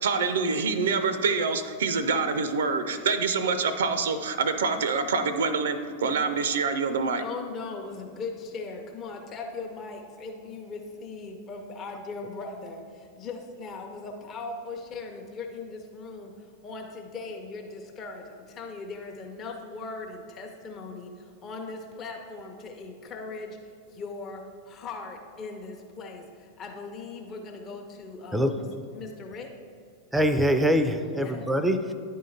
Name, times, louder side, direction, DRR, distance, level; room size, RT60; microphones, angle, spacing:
voice 1, 0.0-7.2, right 4 dB, 60° right, 10 dB, 0.4 m, -26 dB
voice 2, 7.2-12.8 13.1-28.6 28.9-29.5 31.1-31.5, left 3 dB, 30° left, 2 dB, 0.7 m, -39 dB
voice 3, 30.1-31.9, equal, 5° right, 9 dB, 0.4 m, -23 dB
10.0 x 3.7 x 4.2 m, 2.3 s
figure-of-eight pair, 90°, 0 cm